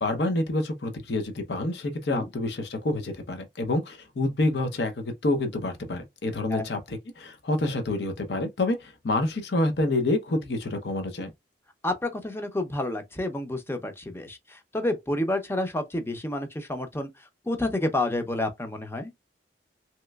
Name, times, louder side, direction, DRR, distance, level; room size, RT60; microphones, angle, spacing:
voice 1, 0.0-11.3, left 2 dB, 70° left, 0.7 m, -28 dB
voice 2, 11.8-19.1, left 1 dB, 15° left, 0.5 m, -29 dB
3.1 x 2.9 x 2.2 m
head